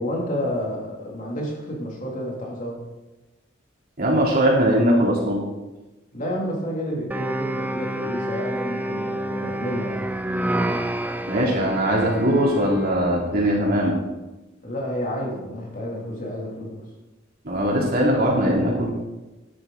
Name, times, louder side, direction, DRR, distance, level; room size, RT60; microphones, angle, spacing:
voice 1, 0.0-2.8 6.1-10.1 14.6-16.8, equal, 45° left, -2 dB, 2.8 m, -30 dB
voice 2, 4.0-5.4 11.3-13.9 17.4-18.9, equal, 50° right, -3 dB, 3.2 m, -20 dB
sound 1, 7.1-13.0, right 1 dB, 10° right, 0.5 m, -28 dB
12.0 x 10.0 x 4.0 m, 1.1 s
head